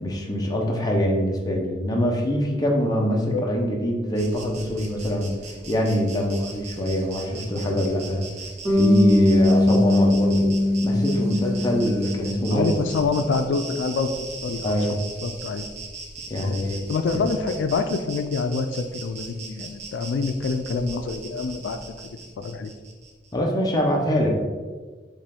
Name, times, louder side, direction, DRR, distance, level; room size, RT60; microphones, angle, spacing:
voice 1, 0.0-5.3 5.7-8.2 8.7-10.5 10.8-12.7 14.6-14.9 16.3-16.8 17.1-17.2 23.3-24.4, equal, 20° left, 0 dB, 0.7 m, -24 dB
Insect, 4.1-23.3, right 3 dB, 40° right, 0.6 m, -40 dB
Bass guitar, 8.6-12.9, left 2 dB, 10° right, 1.3 m, -21 dB
voice 2, 12.5-14.8 15.2-15.7 16.4-16.6 16.9-21.8 22.0-22.7, left 4 dB, 90° left, 8 dB, 0.3 m, -26 dB
5.2 x 2.5 x 3.5 m, 1.4 s
head